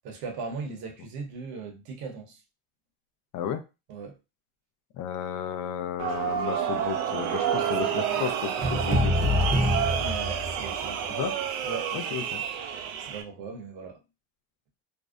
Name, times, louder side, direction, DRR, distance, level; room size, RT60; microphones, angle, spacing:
voice 1, 0.0-2.4 3.9-4.2 10.0-11.2 11.6-11.9 13.0-14.0, right 4 dB, 65° right, 0.9 m, -38 dB
voice 2, 5.0-9.2 11.2-11.4 11.9-12.4, left 9 dB, 50° left, 0.5 m, -33 dB
sound 1, 6.0-13.2, right 8 dB, 85° right, 0.5 m, -29 dB
sound 2, 8.6-10.9, left 1 dB, 25° right, 0.7 m, -26 dB
2.6 x 2.0 x 2.3 m
supercardioid pair, 115°, 40 cm